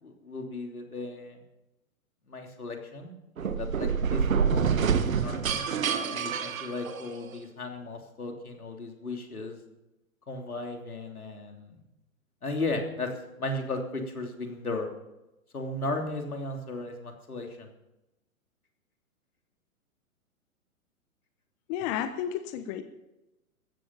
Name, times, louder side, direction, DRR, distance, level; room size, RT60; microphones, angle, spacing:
voice 1, 0.0-1.4 2.3-5.7 6.1-9.6 10.3-11.8 12.4-13.1 13.4-14.9 15.5-17.7, left 2 dB, 80° left, 3 dB, 3.3 m, -36 dB
sound 1, 3.4-7.4, right 6 dB, 65° right, 1.5 m, -27 dB
voice 2, 21.7-22.8, left 10 dB, 30° left, 10 dB, 1.1 m, -32 dB
15.0 x 14.0 x 5.7 m, 0.93 s
figure-of-eight pair, 115°, 43 cm